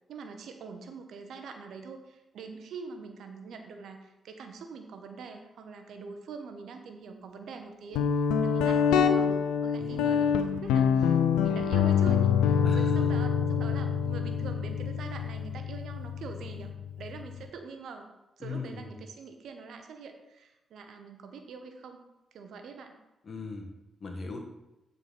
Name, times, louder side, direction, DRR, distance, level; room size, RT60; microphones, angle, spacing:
voice 1, 0.0-9.4 9.6-18.1 18.4-22.0 22.3-23.0, right 5 dB, 70° right, 6 dB, 0.9 m, -44 dB
Guitar, 7.9-17.4, left 7 dB, 80° left, 0.4 m, -26 dB
voice 2, 9.8-10.3 12.6-13.0 18.4-18.9 23.2-23.7 24.0-24.4, left 3 dB, 50° left, 3 dB, 1.5 m, -39 dB
7.5 x 4.2 x 5.4 m, 0.94 s
hypercardioid pair, 40°, 0 cm